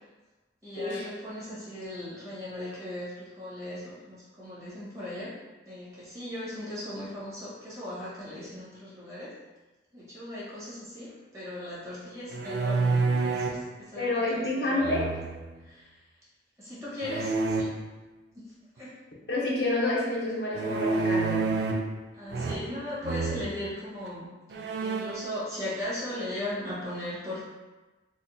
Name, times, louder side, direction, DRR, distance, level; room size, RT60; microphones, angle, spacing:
voice 1, 0.6-5.3 5.7-9.3 9.9-15.0 15.6-16.0 16.6-17.8 18.3-18.4 18.7-19.0 22.1-24.3 24.8-27.4, left 1 dB, 15° right, -10 dB, 1.2 m, -38 dB
sound 1, 12.3-13.6 14.8-15.5 17.0-17.6 20.5-21.9 22.3-22.8 23.0-23.5 24.1-24.2 24.5-25.3, right 3 dB, 65° right, 0.4 m, -28 dB
voice 2, 13.9-15.1 19.3-21.4, left 2 dB, 65° left, -4 dB, 0.8 m, -28 dB
4.2 x 2.4 x 2.7 m, 1.2 s
head